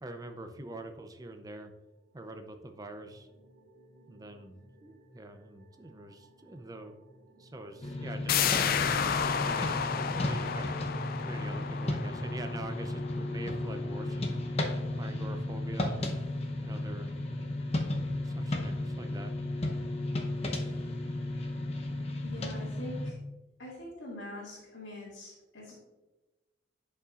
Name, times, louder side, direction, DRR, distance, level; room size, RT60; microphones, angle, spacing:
voice 1, 0.0-1.7 2.1-3.3 4.1-7.0 7.3-10.7 11.2-14.4 15.0-16.1 16.6-17.2 18.2-19.3 22.2-22.3, right 1 dB, 20° right, 7 dB, 0.6 m, -44 dB
sound 1, 2.0-12.7, right 1 dB, 80° right, 1.7 m, -55 dB
sound 2, 7.8-23.1, left 1 dB, 35° left, 0.8 m, -34 dB
sound 3, 8.3-13.8 14.1-14.2, left 7 dB, 50° left, 0.4 m, -32 dB
voice 2, 22.2-23.2 23.6-25.7, left 1 dB, 85° left, -9 dB, 2.1 m, -44 dB
11.0 x 5.5 x 2.5 m, 1.1 s
head